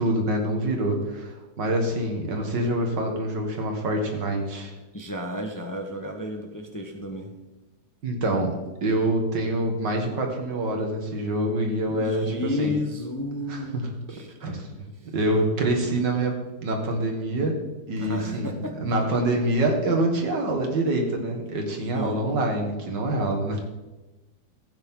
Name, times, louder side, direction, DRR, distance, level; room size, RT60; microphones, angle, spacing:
voice 1, 0.0-4.7 8.0-12.3 12.6-12.7 13.5-13.9 14.4-14.7 15.1-17.6 17.9-18.6 18.8-23.7, right 1 dB, 85° right, 2 dB, 2.5 m, -26 dB
voice 2, 4.9-7.3 11.9-14.5 15.0-15.1 18.0-19.0 21.9-22.2, left 1 dB, 15° left, 2 dB, 0.8 m, -32 dB
15.5 x 9.0 x 3.8 m, 1.1 s
omnidirectional pair, 1.9 m